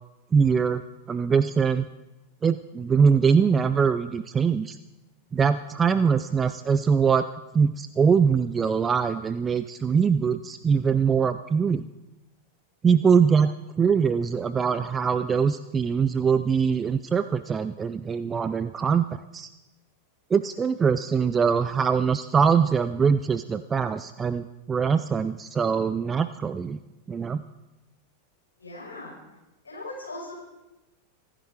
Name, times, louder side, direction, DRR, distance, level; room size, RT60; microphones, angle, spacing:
voice 1, 0.3-0.8 1.1-1.9 2.4-4.8 5.3-7.3 7.5-11.9 12.8-19.5 20.3-26.8 27.1-27.4, right 6 dB, 20° right, 13 dB, 0.5 m, -23 dB
voice 2, 28.6-29.1 29.6-30.4, left 2 dB, 75° left, -4 dB, 6.2 m, -39 dB
25.0 x 11.5 x 4.8 m, 1.0 s
figure-of-eight pair, 90°, 0 cm